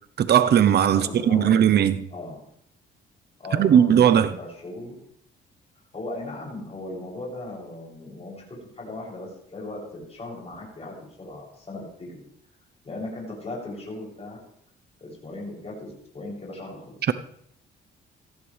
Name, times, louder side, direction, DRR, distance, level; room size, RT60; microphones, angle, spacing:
voice 1, 0.2-2.1 3.6-4.3, right 9 dB, 55° right, 0.9 m, -18 dB
voice 2, 0.9-1.6 2.1-2.4 3.4-5.0 5.9-12.2 12.8-14.4 15.0-17.0, left 2 dB, 30° left, 7.6 m, -37 dB
18.5 x 15.0 x 3.4 m
cardioid pair, 90°, 20 cm